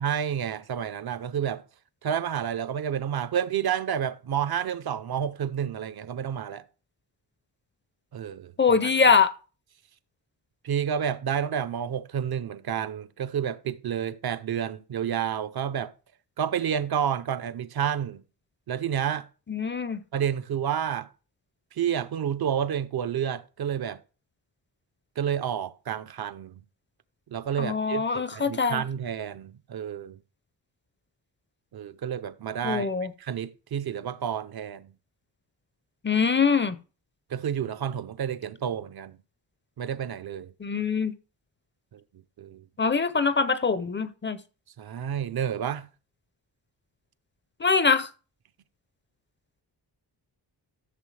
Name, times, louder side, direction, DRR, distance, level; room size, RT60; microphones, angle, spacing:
voice 1, 0.0-1.6 2.0-6.7 8.1-8.9 10.6-15.9 16.4-18.2 18.7-19.3 20.1-21.1 21.8-24.0 25.2-26.6 27.3-30.2 31.7-32.9 33.2-34.9 37.3-39.2 39.8-40.5 41.9-42.0 42.4-42.6 44.8-45.9, right 8 dB, 60° right, 0.6 m, -30 dB
voice 2, 8.6-9.3 19.5-20.0 27.6-28.8 32.6-33.1 36.0-36.8 40.6-41.1 42.8-44.4 47.6-48.1, left 5 dB, 30° left, 0.5 m, -23 dB
14.5 x 6.9 x 3.2 m
wide cardioid pair, 180°, 41 cm